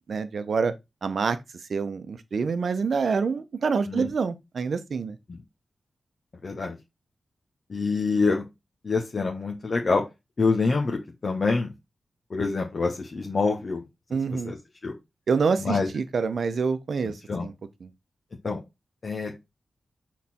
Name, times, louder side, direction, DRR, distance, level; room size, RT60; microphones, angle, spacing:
voice 1, 0.1-0.7 1.0-1.4 1.7-5.2 14.1-14.5 15.3-17.1 17.4-17.5 17.8-17.9, right 5 dB, 65° right, 0.8 m, -26 dB
voice 2, 6.4-6.7 7.7-8.4 8.8-10.0 10.4-11.7 12.3-13.8 14.4-14.6 14.8-14.9 15.6-15.9 17.3-17.5 18.4-18.6 19.0-19.3, left 4 dB, 45° left, 1.3 m, -25 dB
6.6 x 4.1 x 4.2 m
wide cardioid pair, 120°, 0 cm